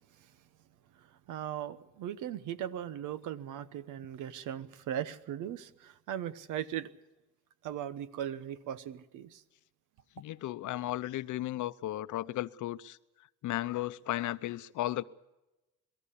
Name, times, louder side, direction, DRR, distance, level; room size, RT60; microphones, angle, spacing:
voice 1, 0.9-6.9 7.6-9.4, right 10 dB, 90° right, 1.1 m, -38 dB
voice 2, 10.2-13.0 13.4-15.0, left 15 dB, 75° left, 0.7 m, -35 dB
24.0 x 13.5 x 8.5 m
cardioid pair, 90°, 30 cm